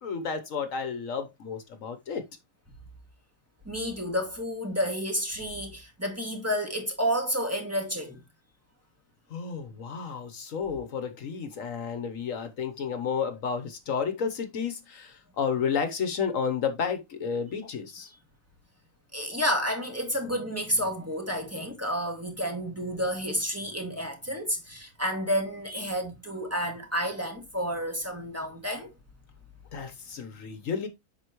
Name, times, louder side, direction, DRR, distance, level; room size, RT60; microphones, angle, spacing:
voice 1, 0.0-2.2 9.3-18.1 29.7-30.9, left 6 dB, 65° left, 1.3 m, -31 dB
voice 2, 3.7-8.2 19.1-28.9, equal, 10° right, 2.1 m, -30 dB
8.0 x 5.9 x 3.0 m
omnidirectional pair, 1.5 m